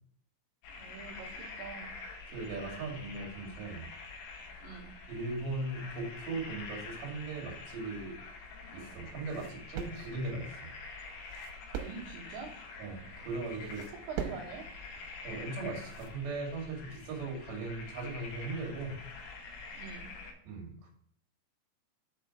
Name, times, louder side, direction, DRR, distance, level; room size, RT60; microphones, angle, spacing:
sound 1, 0.6-20.3, left 3 dB, 70° left, 2.8 m, -47 dB
voice 1, 0.7-1.9 4.6-4.9 11.7-12.5 13.6-14.6 19.8-20.1, right 5 dB, 75° right, -3 dB, 3.0 m, -45 dB
voice 2, 2.3-3.9 5.1-8.2 8.7-10.7 12.8-13.8 15.2-19.0 20.4-20.9, right 3 dB, 50° right, -1 dB, 3.0 m, -38 dB
sound 2, 7.9-16.2, right 8 dB, 90° right, 3.4 m, -45 dB
6.6 x 4.9 x 4.7 m, 0.67 s
omnidirectional pair, 5.9 m